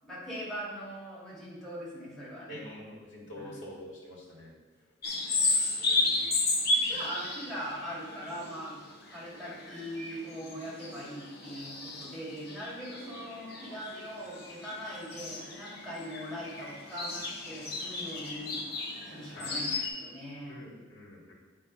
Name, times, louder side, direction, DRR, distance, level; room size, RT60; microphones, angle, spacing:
voice 1, 0.1-2.6 3.3-3.5 6.9-8.8 9.1-18.6 19.1-20.6, equal, ahead, -8 dB, 2.4 m, -41 dB
voice 2, 2.5-4.5 5.9-6.4 6.9-7.0 19.3-19.5 20.5-21.3, left 1 dB, 80° left, -5 dB, 2.4 m, -46 dB
sound 1, 5.0-19.9, left 2 dB, 55° left, 1.1 m, -34 dB
8.6 x 3.7 x 5.5 m, 1.4 s
head